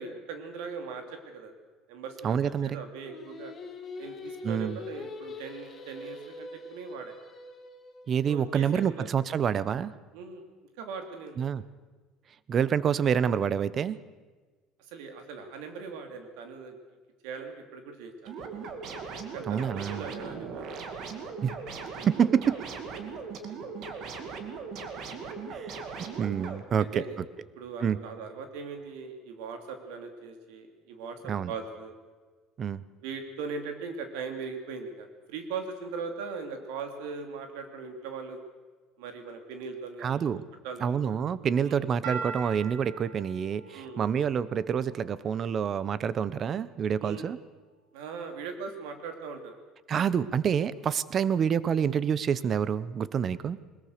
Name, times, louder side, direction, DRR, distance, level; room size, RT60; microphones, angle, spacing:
voice 1, 0.0-1.5 1.9-2.4 2.6-3.5 4.0-7.1 8.3-9.1 10.1-10.4 10.8-11.5 14.9-16.8 17.2-18.5 19.3-20.8 22.0-22.2 22.9-23.4 25.2-25.3 26.4-27.2 27.6-31.9 33.0-38.4 39.0-40.3 40.6-41.2 41.6-41.8 43.7-44.0 47.0-47.3 47.9-49.6, right 5 dB, 90° right, 6 dB, 3.0 m, -40 dB
voice 2, 2.2-2.8 4.4-4.8 8.1-9.9 11.4-11.6 12.5-14.0 19.5-20.1 21.4-21.6 22.1-22.6 25.5-25.8 26.2-27.0 27.8-28.0 31.3-31.5 32.6-32.8 40.0-40.4 40.8-47.4 49.9-53.6, right 7 dB, 30° right, 18 dB, 0.7 m, -27 dB
Singing, 3.0-8.2, left 3 dB, 20° left, 2.8 m, -43 dB
sound 1, 18.3-26.6, right 5 dB, 45° right, 2.2 m, -39 dB
sound 2, 42.0-45.3, right 5 dB, 70° right, 4.1 m, -41 dB
21.5 x 21.5 x 6.6 m, 1.4 s
cardioid pair, 165°, 0 cm